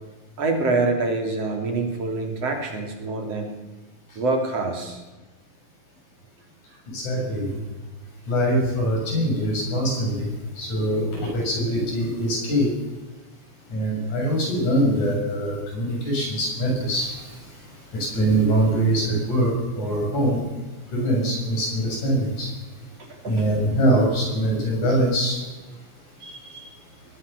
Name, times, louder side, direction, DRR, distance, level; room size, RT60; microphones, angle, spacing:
voice 1, 0.4-3.5 4.2-5.0 23.1-23.5 26.2-26.7, right 3 dB, 55° right, 3 dB, 4.3 m, -26 dB
voice 2, 6.9-7.6 8.3-10.3 10.6-12.7 13.7-17.2 17.9-20.4 20.9-22.5 23.2-25.4, right 1 dB, 85° left, 0 dB, 8.9 m, -23 dB
23.0 x 18.0 x 7.0 m, 1.3 s
omnidirectional pair, 3.3 m